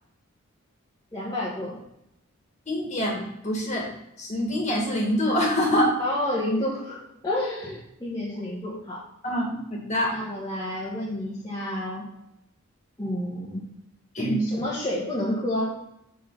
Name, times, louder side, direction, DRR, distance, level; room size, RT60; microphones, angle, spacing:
voice 1, 1.1-1.8 6.0-9.0 10.1-12.0 13.0-13.6 14.4-15.8, left 1 dB, 20° left, -8 dB, 1.5 m, -29 dB
voice 2, 2.7-3.9 4.2-5.9 9.2-10.2 14.1-14.5, equal, 35° left, -1 dB, 2.1 m, -25 dB
6.4 x 6.3 x 4.0 m, 0.82 s
head